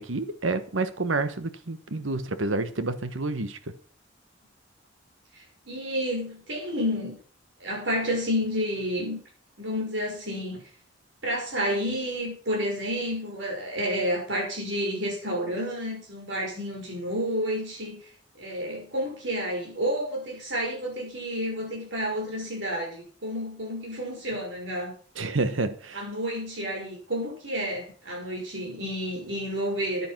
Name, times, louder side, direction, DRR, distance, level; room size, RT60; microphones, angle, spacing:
voice 1, 0.0-3.6 25.2-26.1, right 3 dB, 90° right, 1.2 m, -29 dB
voice 2, 5.4-7.2 7.6-9.2 9.6-10.6 11.2-18.0 18.3-24.9 25.9-30.1, equal, 65° right, 6.1 m, -30 dB
10.0 x 9.9 x 6.0 m
head